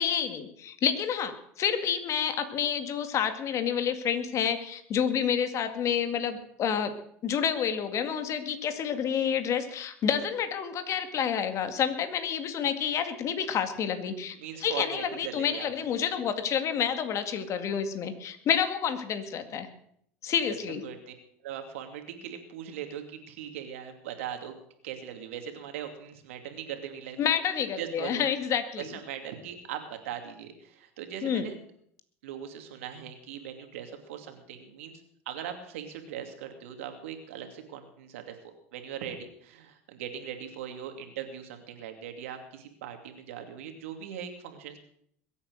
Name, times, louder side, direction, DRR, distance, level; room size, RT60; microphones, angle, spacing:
voice 1, 0.0-7.0 7.2-14.4 14.6-19.7 20.2-20.8 27.2-28.9 31.2-31.5, left 8 dB, 45° left, 9 dB, 2.1 m, -29 dB
voice 2, 14.4-15.7 20.5-20.6 20.8-21.1 21.4-24.5 24.8-27.3 27.8-28.2 28.8-31.6 32.2-34.9 35.3-38.4 38.7-44.8, right 9 dB, 90° right, 6 dB, 2.6 m, -40 dB
22.0 x 8.6 x 6.5 m, 0.68 s
supercardioid pair, 100°, 7 cm